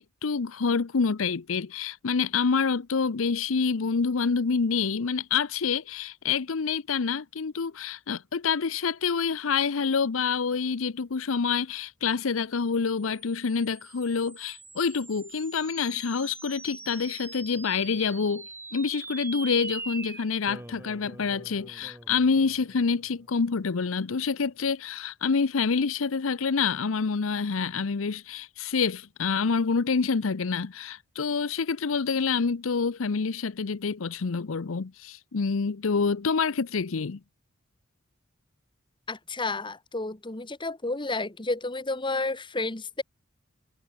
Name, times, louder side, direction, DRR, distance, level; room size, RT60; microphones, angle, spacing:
voice 1, 0.0-37.2, left 5 dB, 85° left, 0.7 m, -27 dB
sound 1, 13.0-23.7, right 3 dB, 10° right, 2.6 m, -43 dB
voice 2, 39.1-43.0, left 2 dB, 25° left, 1.6 m, -31 dB
head